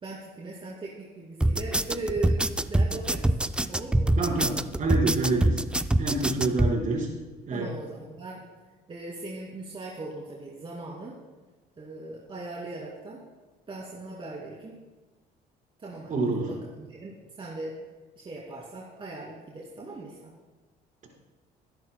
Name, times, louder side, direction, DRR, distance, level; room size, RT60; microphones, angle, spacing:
voice 1, 0.0-2.4 2.7-3.3 3.7-4.2 7.5-8.4 8.9-11.1 11.8-13.2 13.7-14.8 15.8-17.7 18.2-20.3, right 2 dB, 30° right, -4 dB, 2.5 m, -39 dB
sound 1, 1.4-6.7, right 1 dB, 5° right, 0.4 m, -24 dB
voice 2, 4.2-5.6 6.0-7.1 7.5-7.7 16.1-16.5, right 3 dB, 50° right, -2 dB, 4.5 m, -27 dB
22.5 x 11.0 x 2.2 m, 1.3 s
cardioid pair, 110°, 17 cm